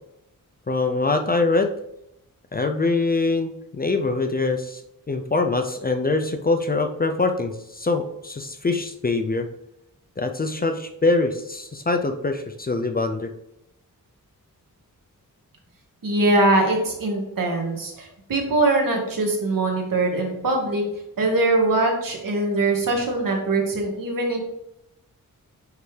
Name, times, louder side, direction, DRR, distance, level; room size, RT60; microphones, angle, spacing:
voice 1, 0.7-1.7 2.5-4.8 5.1-9.5 10.2-13.3, left 3 dB, 25° left, 6 dB, 0.4 m, -23 dB
voice 2, 16.0-20.9 21.2-24.4, right 2 dB, 70° right, 1 dB, 1.6 m, -22 dB
9.3 x 3.4 x 3.3 m, 0.83 s
wide cardioid pair, 135°, 35 cm